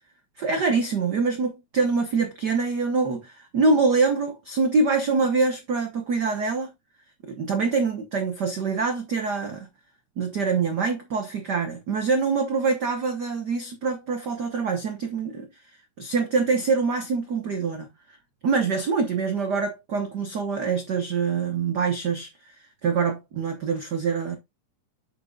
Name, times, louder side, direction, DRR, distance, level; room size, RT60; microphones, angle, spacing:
voice 1, 0.4-6.7 7.2-9.7 10.2-15.5 16.0-18.2 18.4-22.5 22.8-24.4, right 4 dB, 65° right, 1.0 m, -25 dB
7.9 x 7.4 x 2.3 m
omnidirectional pair, 3.4 m